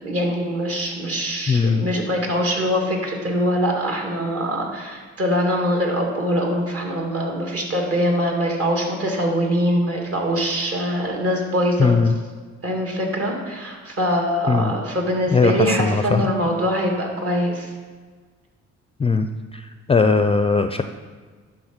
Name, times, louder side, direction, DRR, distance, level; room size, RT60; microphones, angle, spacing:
voice 1, 0.0-12.0 12.6-17.7, equal, 50° right, 0 dB, 2.3 m, -23 dB
voice 2, 1.5-1.9 11.8-12.1 14.5-14.7 15.3-16.3 19.0-19.3 19.9-20.8, left 4 dB, 20° left, 8 dB, 0.4 m, -18 dB
11.0 x 3.8 x 6.5 m, 1.5 s
cardioid pair, 90°, 30 cm